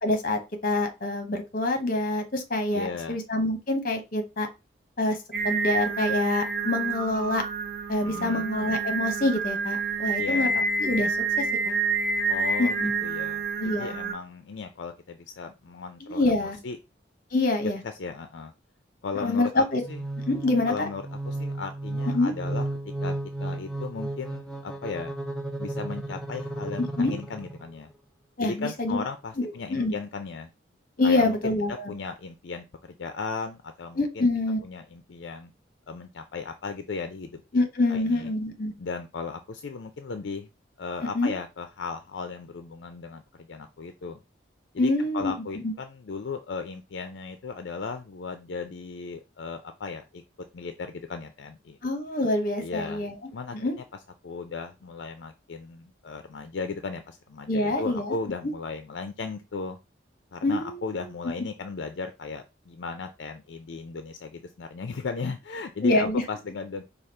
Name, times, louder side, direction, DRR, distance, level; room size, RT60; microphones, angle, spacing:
voice 1, 0.0-4.5 5.0-5.2 5.4-7.4 7.9-10.5 10.8-11.8 12.6-12.9 13.6-13.9 16.0-16.6 17.3-17.8 19.1-19.8 20.3-20.9 22.1-22.3 27.0-27.1 28.4-29.0 29.4-29.9 31.0-31.9 34.0-34.6 37.5-38.7 41.1-41.3 44.8-45.3 45.6-45.7 51.8-53.7 57.5-58.1 60.4-61.0 65.8-66.2, left 2 dB, 45° left, 6 dB, 1.0 m, -26 dB
voice 2, 2.7-3.2 8.0-8.5 10.2-10.5 12.3-16.8 17.8-18.5 19.0-20.0 20.7-22.7 23.0-23.1 23.4-25.1 25.6-27.9 28.4-30.5 31.0-34.3 34.6-35.5 35.9-37.4 37.9-38.3 38.8-40.5 40.8-44.2 44.7-50.2 50.5-51.8 52.6-53.0 53.3-53.6 54.2-59.8 60.3-66.8, left 4 dB, 65° left, 8 dB, 0.5 m, -36 dB
Singing, 5.3-14.1, right 4 dB, 50° right, 1.2 m, -28 dB
sound 1, 19.8-27.7, right 1 dB, 5° left, 0.5 m, -33 dB
5.0 x 2.4 x 4.3 m, 0.26 s
head